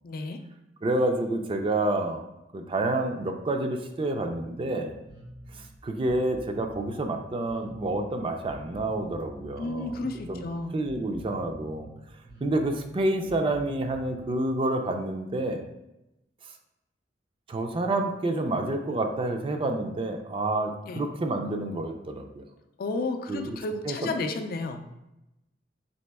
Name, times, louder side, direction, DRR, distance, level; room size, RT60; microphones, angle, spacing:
voice 1, 0.0-0.4 9.6-10.7 20.9-21.0 22.8-24.9, left 2 dB, 55° left, 6 dB, 0.4 m, -32 dB
voice 2, 0.8-2.2 2.5-5.0 5.5-10.0 10.3-10.4 10.7-11.9 12.4-15.6 17.5-22.5 23.3-23.6 23.8-24.1, right 2 dB, 30° right, 5 dB, 0.4 m, -28 dB
Bass guitar, 5.0-14.5, right 1 dB, 90° right, 1.3 m, -47 dB
4.1 x 2.9 x 3.4 m, 0.92 s
head